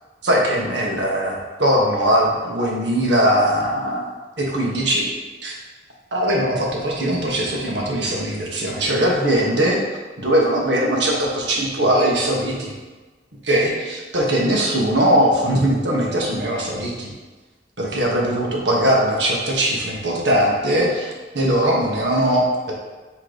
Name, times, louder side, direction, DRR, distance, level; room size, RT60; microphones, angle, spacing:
voice 1, 0.2-4.1 4.4-5.1 5.4-5.5 6.1-9.8 10.2-12.7 13.4-17.1 17.8-22.7, right 1 dB, 75° right, -2 dB, 1.3 m, -20 dB
6.3 x 3.2 x 5.1 m, 1.3 s
head